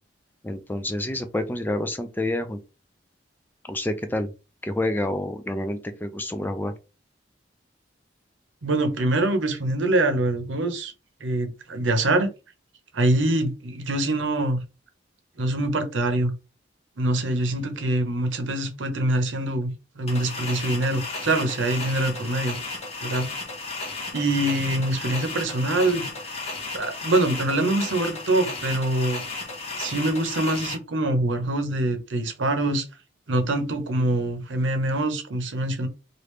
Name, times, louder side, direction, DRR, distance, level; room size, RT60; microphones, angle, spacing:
voice 1, 0.4-2.6 3.7-4.3 4.6-6.7, left 1 dB, 10° left, 0.3 m, -28 dB
voice 2, 8.6-10.9 11.2-12.3 12.9-14.6 15.4-16.3 17.0-19.7 20.0-22.6 23.0-23.3 24.1-26.1 26.7-29.2 29.7-32.8 33.3-35.9, right 2 dB, 90° right, 0.8 m, -24 dB
sound 1, 20.1-30.7, left 3 dB, 35° left, 0.9 m, -34 dB
3.3 x 2.5 x 3.1 m
head